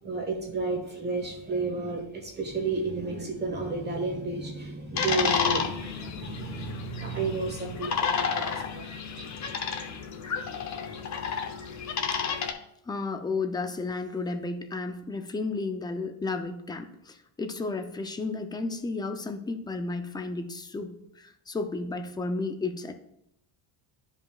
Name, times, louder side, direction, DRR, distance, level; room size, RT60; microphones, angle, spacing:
voice 1, 0.0-8.9 9.2-9.3, right 3 dB, 25° right, 1 dB, 1.1 m, -32 dB
sound 1, 5.0-12.5, left 6 dB, 40° left, 0.8 m, -31 dB
voice 2, 12.9-22.9, left 3 dB, 10° left, 7 dB, 0.4 m, -33 dB
12.5 x 5.3 x 2.4 m, 0.78 s
cardioid pair, 155°, 44 cm